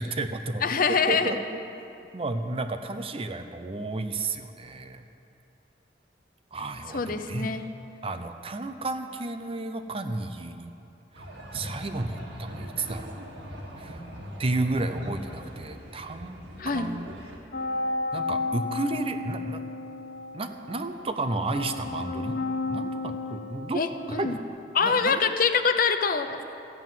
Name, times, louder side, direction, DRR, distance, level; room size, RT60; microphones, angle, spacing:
voice 1, 0.0-0.6 0.9-1.6 2.1-5.1 6.5-7.5 8.0-10.7 11.5-13.3 13.8-14.0 14.4-16.4 16.7-17.1 18.1-19.6 20.3-22.4 22.7-23.8 24.1-24.4 24.8-25.2, right 2 dB, 30° right, 8 dB, 0.6 m, -32 dB
voice 2, 0.6-1.3 6.9-7.7 16.6-16.9 23.7-24.4 24.7-26.4, left 5 dB, 50° left, 8 dB, 0.7 m, -24 dB
sound 1, 11.1-17.4, equal, 80° right, 2.1 m, -41 dB
sound 2, 17.5-24.4, left 3 dB, 70° left, 1.0 m, -33 dB
14.5 x 7.7 x 9.2 m, 2.7 s
head